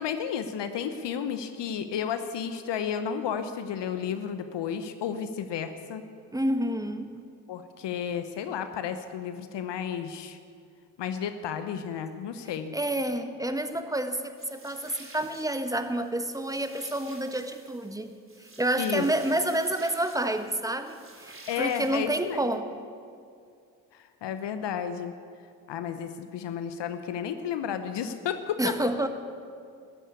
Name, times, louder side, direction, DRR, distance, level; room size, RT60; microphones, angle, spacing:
voice 1, 0.0-6.0 7.5-10.4 11.0-12.7 18.8-19.1 21.5-22.4 23.9-25.1 25.7-28.8, left 8 dB, 55° left, 9 dB, 1.0 m, -32 dB
voice 2, 6.3-7.1 12.7-18.1 18.4-22.7 28.6-29.1, right 1 dB, 5° right, 8 dB, 1.3 m, -29 dB
corto circuito, 14.4-22.5, right 2 dB, 25° right, 3.2 m, -51 dB
13.0 x 11.5 x 8.4 m, 2.3 s
hypercardioid pair, 40°, 49 cm